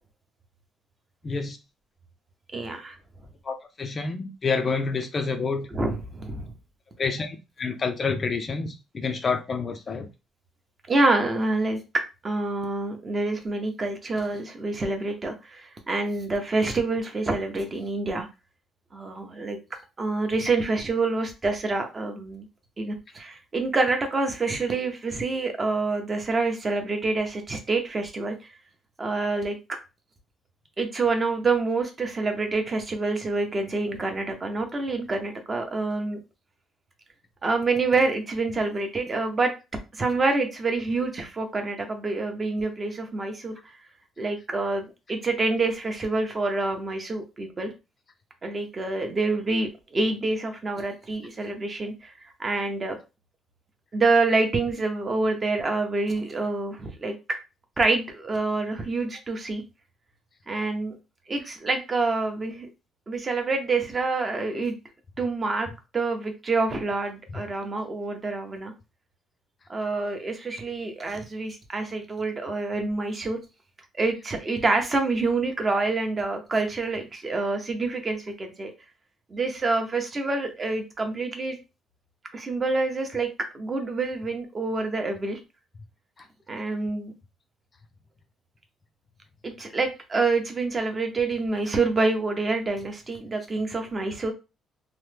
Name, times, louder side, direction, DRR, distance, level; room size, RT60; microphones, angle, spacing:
voice 1, 1.2-1.6 3.4-5.7 7.0-10.1, left 4 dB, 30° left, 0.3 m, -28 dB
voice 2, 2.5-2.9 5.7-6.4 10.9-11.8 12.2-18.3 18.9-19.6 20.0-22.5 22.8-28.3 29.0-29.6 30.8-36.2 37.4-39.5 39.9-43.5 44.2-47.7 48.4-52.1 52.4-53.0 53.9-57.1 57.8-59.6 60.5-61.0 61.3-62.7 63.1-64.7 65.2-65.7 65.9-68.7 69.7-73.4 74.0-78.7 79.3-81.6 82.3-83.3 83.5-85.4 86.5-87.1 89.4-94.3, right 3 dB, 25° right, 0.5 m, -27 dB
2.9 x 2.1 x 3.2 m
cardioid pair, 170°, 0 cm